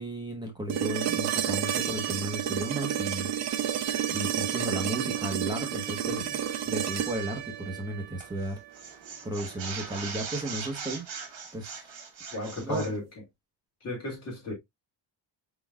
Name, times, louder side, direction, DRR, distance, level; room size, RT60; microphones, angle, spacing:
voice 1, 0.0-11.0 11.5-11.9 12.6-12.9, right 1 dB, 10° right, 1.0 m, -35 dB
sound 1, 0.7-8.8 10.9-11.0, right 9 dB, 40° right, 0.4 m, -31 dB
sound 2, 8.2-8.5 8.7-13.0, right 5 dB, 70° right, 1.9 m, -40 dB
voice 2, 12.3-13.0 13.8-14.5, left 2 dB, 30° left, 2.2 m, -34 dB
5.0 x 3.9 x 2.3 m
cardioid pair, 175°, 47 cm